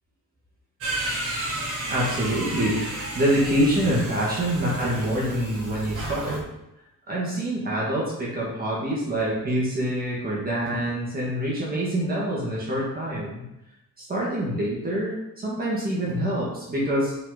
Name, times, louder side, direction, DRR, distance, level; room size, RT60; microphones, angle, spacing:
sound 1, 0.8-6.4, right 1 dB, 50° right, 1.4 m, -32 dB
voice 1, 1.9-2.8 3.1-6.5 7.1-13.4 14.0-17.1, right 1 dB, 30° right, -6 dB, 1.6 m, -26 dB
5.6 x 4.1 x 4.8 m, 0.89 s
cardioid pair, 155°, 31 cm